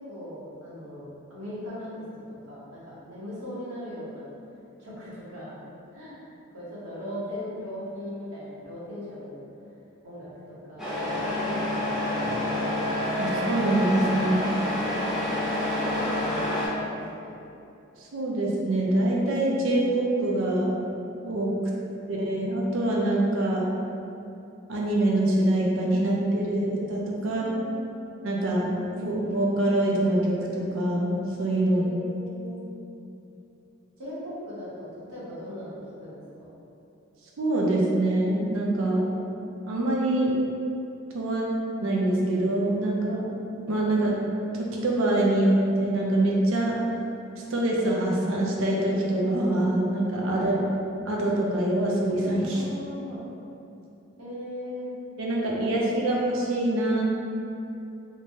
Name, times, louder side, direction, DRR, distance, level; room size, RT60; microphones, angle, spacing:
voice 1, 0.1-1.0 1.3-1.9 2.3-4.3 4.8-5.6 5.9-6.2 6.5-9.4 10.0-12.2 15.0-17.3 22.0-22.2 27.2-28.0 31.7-32.6 34.0-36.5 50.3-50.6 52.5-53.2 54.2-54.9 56.0-56.2, left 1 dB, 90° right, -9 dB, 0.9 m, -39 dB
Truck, 10.8-16.7, left 1 dB, ahead, 0.4 m, -28 dB
voice 2, 13.2-14.5 18.1-20.7 21.2-21.5 22.1-23.7 24.7-27.4 28.2-28.7 29.0-31.8 37.4-39.1 39.7-40.3 41.1-41.5 41.8-43.3 43.7-44.2 44.5-46.7 47.5-50.5 51.1-52.6 55.2-57.0, right 1 dB, 65° right, -3 dB, 0.5 m, -24 dB
3.1 x 2.1 x 2.6 m, 2.7 s
head